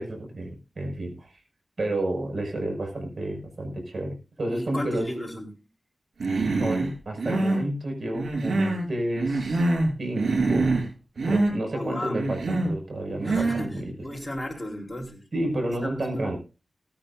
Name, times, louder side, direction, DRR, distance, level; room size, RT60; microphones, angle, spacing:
voice 1, 0.0-1.4 1.8-5.1 6.3-9.6 10.0-10.8 11.2-13.9 15.3-16.4, right 1 dB, 65° right, 3 dB, 6.1 m, -31 dB
voice 2, 4.5-5.6 11.7-12.3 13.2-15.2 15.8-16.3, left 1 dB, 20° left, 1 dB, 4.1 m, -35 dB
Human voice, 6.2-6.9 7.2-7.7 8.1-8.9 9.2-9.9 10.2-10.9 11.2-11.5 12.1-12.7 13.2-13.7, right 2 dB, 85° right, 6.3 m, -25 dB
19.0 x 10.0 x 2.7 m, 0.32 s
cardioid pair, 55°, 0 cm